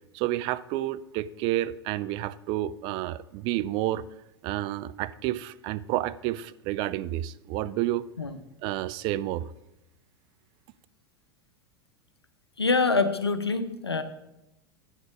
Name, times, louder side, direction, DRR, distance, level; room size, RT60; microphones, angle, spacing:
voice 1, 0.1-4.0 4.4-8.1 8.6-9.5, right 14 dB, 40° right, 16 dB, 0.4 m, -30 dB
voice 2, 12.6-14.0, left 4 dB, 85° left, 10 dB, 0.7 m, -25 dB
9.4 x 6.1 x 4.8 m, 0.91 s
figure-of-eight pair, 85°, 13 cm